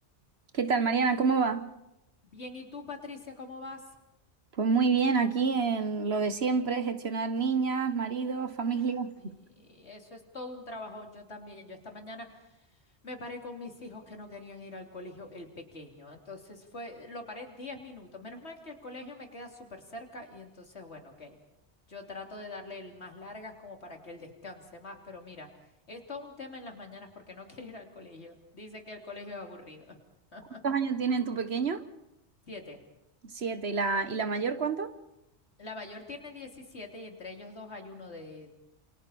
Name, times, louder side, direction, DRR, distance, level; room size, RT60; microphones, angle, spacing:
voice 1, 0.5-1.7 4.6-9.3 30.6-31.8 33.3-35.0, right 5 dB, 65° right, 9 dB, 1.5 m, -28 dB
voice 2, 2.2-3.8 8.8-12.7 13.0-21.4 21.9-25.5 25.9-30.0 30.3-30.6 32.5-32.8 35.6-38.6, left 2 dB, 70° left, 3 dB, 3.5 m, -44 dB
28.5 x 28.5 x 4.3 m, 0.87 s
omnidirectional pair, 1.2 m